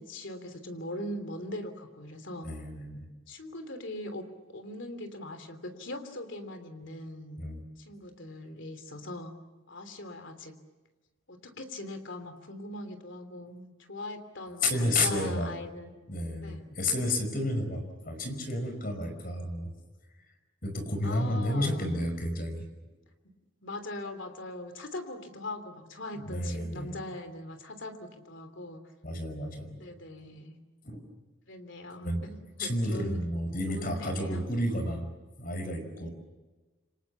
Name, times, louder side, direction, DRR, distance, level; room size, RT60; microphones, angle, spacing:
voice 1, 0.0-2.5 3.3-4.2 4.5-7.4 7.8-9.3 9.7-10.6 11.3-15.9 16.4-16.6 21.0-21.9 23.6-28.8 29.7-30.6 31.5-33.2 33.7-34.4 36.0-36.1, left 1 dB, 60° left, 8 dB, 3.1 m, -41 dB
voice 2, 2.4-3.1 7.4-7.6 14.6-15.5 16.1-19.7 20.6-22.7 26.2-26.9 29.0-29.8 30.8-31.0 32.0-32.2 32.6-35.1 35.4-36.1, left 1 dB, 45° left, 6 dB, 5.3 m, -31 dB
28.5 x 25.5 x 7.2 m, 1.2 s
head